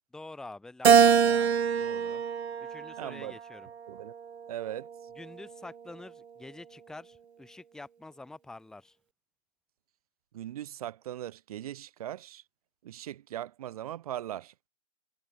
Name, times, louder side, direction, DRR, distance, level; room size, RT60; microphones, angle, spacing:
voice 1, 0.1-2.2 2.6-3.7 5.2-9.0, left 2 dB, ahead, 1.9 m, -47 dB
Keyboard (musical), 0.8-3.3 3.9-5.1, right 7 dB, 55° right, 0.5 m, -24 dB
voice 2, 3.0-3.4 3.9-4.1 4.5-4.9 10.3-12.4 12.8-14.5, right 12 dB, 25° right, 2.6 m, -39 dB
figure-of-eight pair, 140°, 40 cm